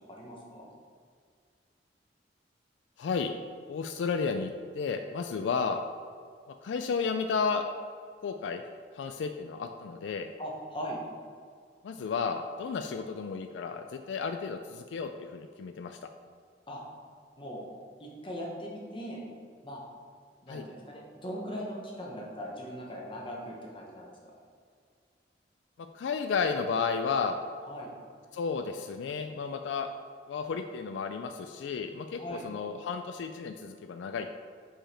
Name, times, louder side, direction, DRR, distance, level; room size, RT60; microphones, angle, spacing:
voice 1, 0.1-0.7 10.4-11.0 16.7-16.8 17.4-17.7 18.0-19.2 19.6-19.8 20.4-24.1 27.7-27.9 32.2-32.4, equal, 30° left, -2 dB, 1.1 m, -39 dB
voice 2, 3.0-3.3 3.7-5.8 6.6-7.6 8.2-8.6 8.9-10.3 11.8-16.0 20.5-20.7 25.8-27.4 28.3-29.9 30.3-34.3, left 5 dB, 80° left, 7 dB, 0.3 m, -32 dB
5.0 x 4.9 x 4.3 m, 2.1 s
head